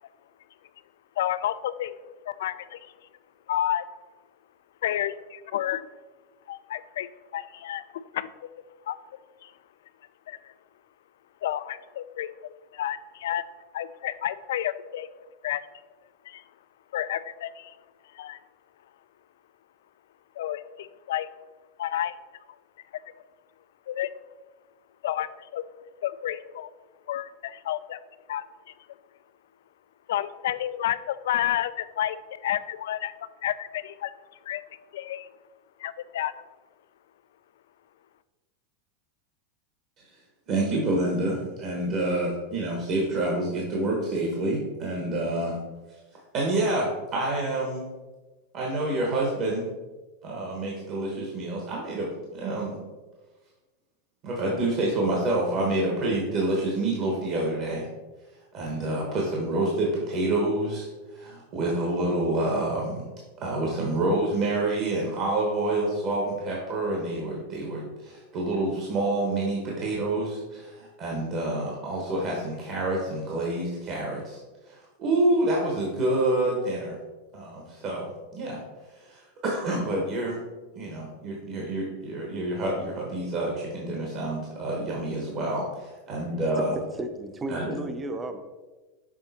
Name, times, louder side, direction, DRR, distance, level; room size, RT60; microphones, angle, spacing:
voice 1, 1.2-1.9 2.3-2.9 3.5-3.9 4.8-5.9 6.5-8.5 8.9-9.0 9.4-9.5 10.3-10.5 11.4-12.3 12.7-13.4 13.7-15.1 15.4-15.6 16.3-16.4 16.9-17.8 18.1-18.4 20.4-21.3 21.8-22.2 23.9-24.1 25.0-25.6 26.0-26.7 27.1-28.0 28.3-28.4 30.1-33.1 33.4-34.1 34.4-34.6 34.9-35.3 35.8-36.3, left 12 dB, 80° left, 15 dB, 0.3 m, -30 dB
voice 2, 40.5-45.6 46.3-47.8 48.5-49.7 50.2-52.8 54.2-57.9 58.5-63.1 63.4-74.4 74.7-76.9 77.3-78.1 78.3-78.6 78.9-80.4 80.7-86.7 87.5-87.8, right 2 dB, 35° right, -2 dB, 1.0 m, -28 dB
voice 3, 86.5-88.4, right 2 dB, 15° right, 8 dB, 0.4 m, -34 dB
6.2 x 3.8 x 4.0 m, 1.2 s
supercardioid pair, 160°, 0 cm